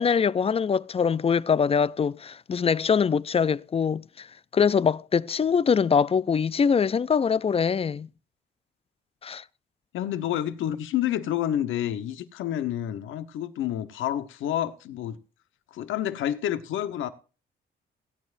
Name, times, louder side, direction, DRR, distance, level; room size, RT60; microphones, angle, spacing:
voice 1, 0.0-4.3 4.5-8.1 9.2-9.4, left 6 dB, 30° left, 0.4 m, -23 dB
voice 2, 9.9-15.2 15.7-17.1, left 11 dB, 80° left, 1.1 m, -29 dB
16.5 x 9.6 x 2.6 m
cardioid pair, 90°, 20 cm